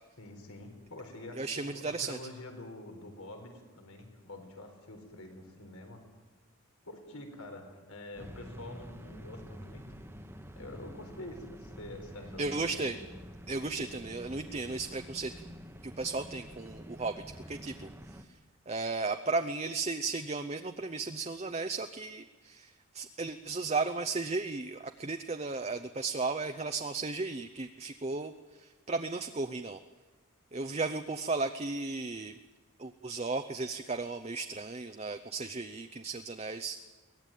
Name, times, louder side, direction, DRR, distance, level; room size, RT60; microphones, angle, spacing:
voice 1, 0.2-6.0 6.8-10.0 10.6-13.0, left 1 dB, 85° left, 4 dB, 4.4 m, -46 dB
voice 2, 1.4-2.2 12.4-13.0 13.5-15.3 15.8-17.2 17.5-17.9 18.2-18.3 18.7-29.8 30.5-32.4 32.8-36.8, right 3 dB, 30° right, 8 dB, 0.6 m, -35 dB
sound 1, 8.2-18.2, equal, 10° right, 1.1 m, -48 dB
23.0 x 18.5 x 9.2 m, 1.3 s
head